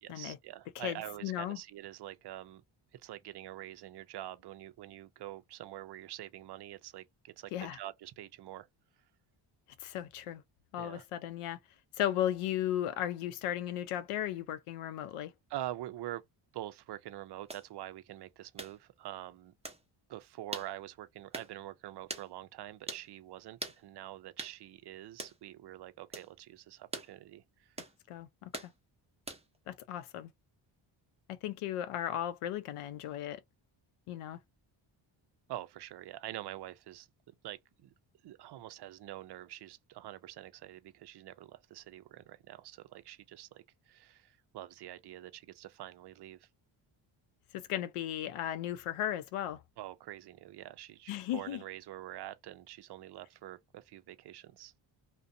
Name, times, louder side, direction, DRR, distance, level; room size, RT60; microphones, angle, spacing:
voice 1, 0.0-2.6 3.0-8.7 10.8-11.0 15.5-16.2 16.5-19.5 20.1-27.8 35.5-37.1 37.4-37.9 38.2-46.5 49.8-54.7, right 13 dB, 55° right, 0.5 m, -45 dB
voice 2, 0.8-1.6 7.5-7.8 9.8-10.4 10.7-11.6 12.0-15.3 28.1-28.7 29.7-30.3 31.3-33.4 34.1-34.4 47.5-49.6 51.1-51.6, left 11 dB, 85° left, 0.6 m, -36 dB
sound 1, 17.5-17.7 18.6-18.8 19.6-19.8 20.5-20.7 21.3-21.5 22.1-22.3 22.9-23.1 23.6-23.8 24.4-24.6 25.2-25.4 26.1-26.3 26.9-27.1 27.8-28.0 28.5-28.7 29.3-29.6, right 2 dB, 15° right, 0.8 m, -42 dB
2.5 x 2.2 x 2.6 m
cardioid pair, 70°, 50 cm